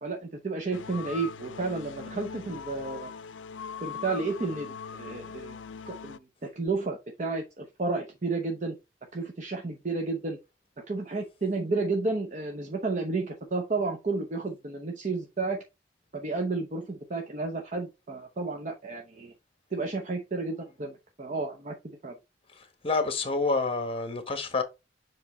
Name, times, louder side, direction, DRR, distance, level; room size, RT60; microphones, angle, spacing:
voice 1, 0.0-3.1 3.8-5.6 5.9-6.2 6.6-8.8 9.1-10.4 10.9-15.6 16.1-19.3 19.7-22.1, right 3 dB, 40° right, 0.8 m, -32 dB
sound 1, 0.7-6.2, left 6 dB, 85° left, 0.4 m, -41 dB
voice 2, 22.5-24.6, left 3 dB, 30° left, 1.1 m, -28 dB
7.2 x 3.1 x 4.2 m
head